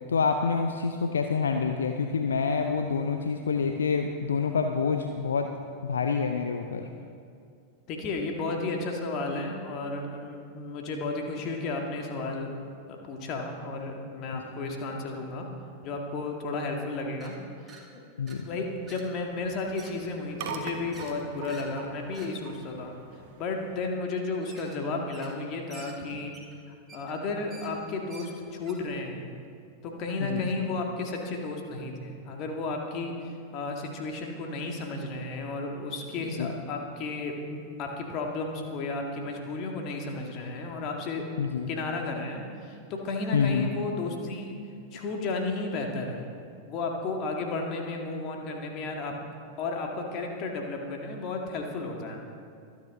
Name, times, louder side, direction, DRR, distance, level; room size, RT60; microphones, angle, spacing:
voice 1, 0.1-5.5 5.8-6.9 14.3-14.5 18.2-18.4 30.2-30.4 36.4-36.5 41.4-41.7 43.3-43.7, left 5 dB, 70° left, 5 dB, 0.6 m, -27 dB
voice 2, 7.9-15.5 15.8-17.4 18.4-23.0 23.4-26.3 26.7-29.3 29.8-41.2 41.7-44.6 44.9-46.3 46.6-49.1 49.6-52.2, left 3 dB, 40° left, 2 dB, 2.0 m, -33 dB
sound 1, 17.2-17.3 17.7-17.8 18.3-18.4 18.9-19.1 19.4-19.9 20.4-20.5 20.9-21.1 21.5-21.7 22.1-22.3 24.4-24.7 25.1-25.4 25.7-28.7, right 3 dB, 15° right, 2.5 m, -49 dB
sound 2, 18.4-23.8, right 5 dB, 50° right, 1.4 m, -43 dB
24.5 x 9.5 x 3.8 m, 2.3 s
figure-of-eight pair, 90°, 0 cm